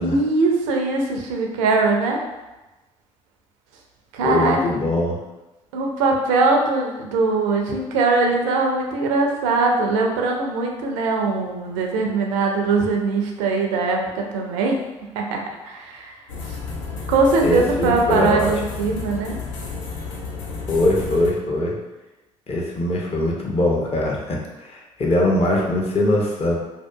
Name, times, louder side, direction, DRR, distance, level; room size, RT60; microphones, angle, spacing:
voice 1, 0.0-2.2 4.1-4.6 5.7-14.8 15.2-15.4 15.6-16.1 17.1-19.4, right 3 dB, 75° right, 1 dB, 0.4 m, -21 dB
voice 2, 4.2-5.2 17.4-18.5 20.7-21.8 22.5-26.6, left 1 dB, 40° left, -1 dB, 0.6 m, -21 dB
sound 1, 16.3-21.3, left 4 dB, 80° left, 0.4 m, -31 dB
2.6 x 2.3 x 2.2 m, 1.1 s
hypercardioid pair, 50°, 16 cm